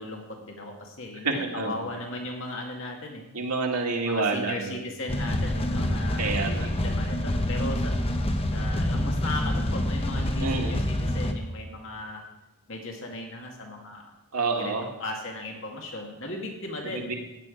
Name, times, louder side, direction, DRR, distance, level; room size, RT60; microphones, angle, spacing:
voice 1, 0.0-3.2 3.9-7.9 8.5-12.2 12.7-14.1 14.5-17.1, left 2 dB, 55° left, 1 dB, 2.0 m, -37 dB
voice 2, 1.2-1.9 3.3-4.8 6.2-6.7 10.4-10.8 14.3-14.9 16.8-17.1, right 3 dB, 85° right, 1 dB, 2.2 m, -28 dB
sound 1, 5.1-11.3, left 1 dB, 25° left, 0.9 m, -27 dB
15.5 x 5.9 x 9.3 m, 0.97 s
head